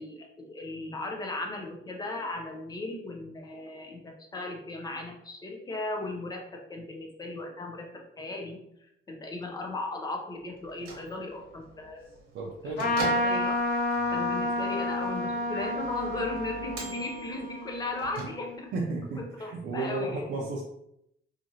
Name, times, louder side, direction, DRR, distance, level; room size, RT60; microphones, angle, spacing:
voice 1, 0.0-12.1 12.6-12.7 13.0-13.6 14.1-18.7 19.2-20.2, left 2 dB, 20° left, 2 dB, 0.4 m, -37 dB
Bell / Microwave oven, 10.5-18.8, right 2 dB, 70° right, 1.0 m, -44 dB
voice 2, 12.3-13.0 18.7-20.6, right 3 dB, 55° right, -3 dB, 0.5 m, -33 dB
Trumpet, 12.8-18.6, left 1 dB, 55° left, 0.7 m, -30 dB
2.9 x 2.4 x 2.7 m, 0.77 s
cardioid pair, 170°, 21 cm